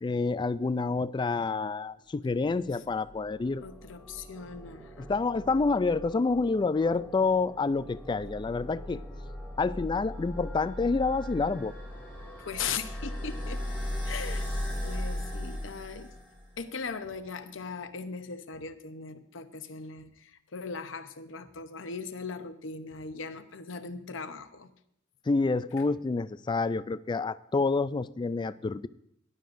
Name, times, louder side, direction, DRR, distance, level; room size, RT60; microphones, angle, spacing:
voice 1, 0.0-3.6 5.1-9.0 9.6-11.7 25.3-28.9, left 3 dB, 25° left, 15 dB, 0.3 m, -28 dB
sound 1, 2.6-16.6, left 1 dB, 5° right, 4.2 m, -38 dB
voice 2, 3.6-5.2 12.4-13.6 14.0-14.5 14.8-16.1 16.6-24.7, left 5 dB, 75° left, 9 dB, 0.8 m, -39 dB
18.0 x 11.0 x 2.6 m, 0.73 s
head